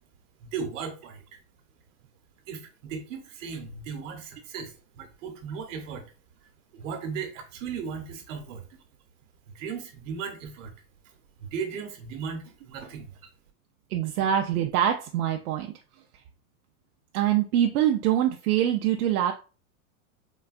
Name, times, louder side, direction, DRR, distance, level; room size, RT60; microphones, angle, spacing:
voice 1, 0.4-1.2 2.5-6.0 6.7-8.6 9.5-10.7 11.0-11.1 11.4-13.1, right 6 dB, 55° right, 4 dB, 1.0 m, -36 dB
voice 2, 13.9-15.7 17.1-19.3, right 11 dB, 75° right, 4 dB, 0.5 m, -24 dB
3.8 x 2.2 x 2.4 m, 0.34 s
supercardioid pair, 165°, 44 cm